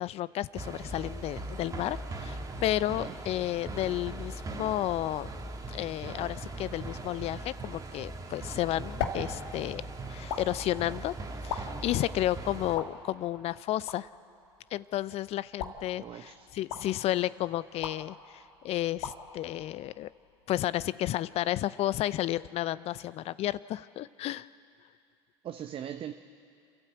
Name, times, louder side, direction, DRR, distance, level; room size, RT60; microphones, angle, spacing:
voice 1, 0.0-5.3 5.7-11.1 11.4-14.1 14.7-20.1 20.5-24.5, left 14 dB, 45° left, 18 dB, 0.5 m, -32 dB
sound 1, 0.5-12.8, right 2 dB, 25° right, 2.2 m, -40 dB
sound 2, 8.3-20.5, left 6 dB, 70° left, 1.7 m, -42 dB
voice 2, 16.0-16.5 25.4-26.1, right 10 dB, 40° right, 7 dB, 0.8 m, -40 dB
28.5 x 12.5 x 8.1 m, 2.4 s
hypercardioid pair, 75°, 14 cm